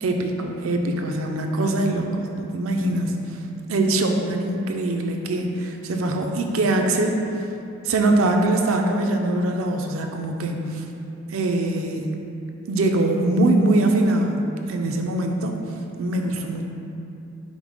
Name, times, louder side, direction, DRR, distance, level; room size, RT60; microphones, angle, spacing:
voice 1, 0.0-3.4 3.7-7.2 7.8-10.9 11.3-12.1 12.7-15.6 16.0-16.6, right 2 dB, 85° right, 3 dB, 0.4 m, -23 dB
5.2 x 2.1 x 4.7 m, 2.7 s
head